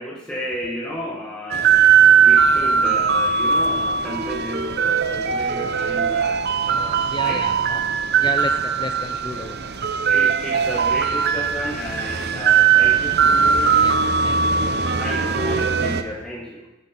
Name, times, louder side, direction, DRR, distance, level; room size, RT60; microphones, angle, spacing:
voice 1, 0.0-1.7 2.2-7.5 10.1-13.3 15.0-16.7, equal, 5° left, -6 dB, 1.5 m, -32 dB
sound 1, 1.5-16.0, right 6 dB, 50° right, 0.8 m, -19 dB
voice 2, 7.1-7.8 8.2-9.6 13.8-14.0 14.2-14.8, left 2 dB, 20° left, 6 dB, 0.5 m, -32 dB
15.5 x 9.8 x 4.3 m, 1.0 s
head